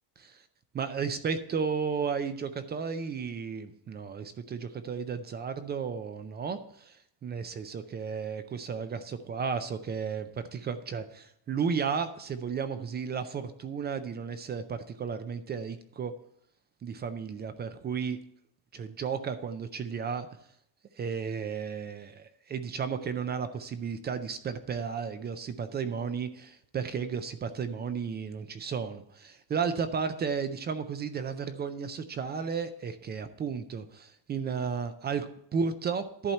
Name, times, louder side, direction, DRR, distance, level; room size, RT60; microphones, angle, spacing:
voice 1, 0.7-16.1 16.8-18.2 18.7-20.3 20.9-36.3, right 6 dB, 25° right, 11 dB, 0.3 m, -33 dB
11.0 x 4.3 x 7.2 m, 0.69 s
cardioid pair, 165°, 46 cm